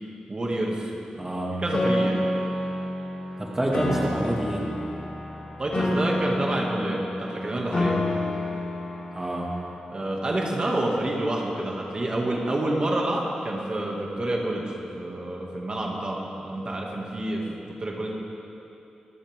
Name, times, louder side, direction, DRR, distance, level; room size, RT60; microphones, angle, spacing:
voice 1, 0.3-0.9 1.5-2.2 5.6-8.0 9.9-18.1, right 1 dB, 35° right, -2 dB, 2.5 m, -28 dB
voice 2, 1.2-1.6 3.4-4.6 9.1-9.5, right 1 dB, 20° right, -3 dB, 2.3 m, -27 dB
Piano, 1.7-9.7, left 1 dB, 45° left, 3.3 m, -29 dB
26.5 x 13.5 x 3.8 m, 2.8 s
cardioid pair, 85°, 3 cm